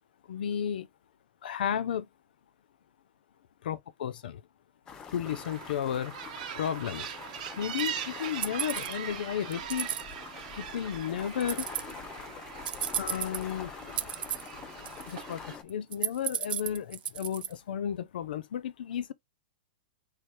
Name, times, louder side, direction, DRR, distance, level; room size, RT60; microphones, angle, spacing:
voice 1, 0.3-0.9 1.4-2.1 3.6-4.4 5.1-7.1 7.6-9.9 10.5-11.7 13.0-13.7 15.1-19.1, left 9 dB, 80° left, 0.5 m, -33 dB
sound 1, 4.9-15.6, left 6 dB, 15° left, 0.4 m, -45 dB
sound 2, 5.2-15.6, right 10 dB, 50° right, 0.8 m, -41 dB
sound 3, 7.8-7.9 8.4-9.0 9.5-10.0 11.4-11.9 12.7-13.5 14.0-14.5 14.9-15.3 15.7-17.5, right 9 dB, 85° right, 0.6 m, -33 dB
3.3 x 2.3 x 4.4 m
supercardioid pair, 170°, 5 cm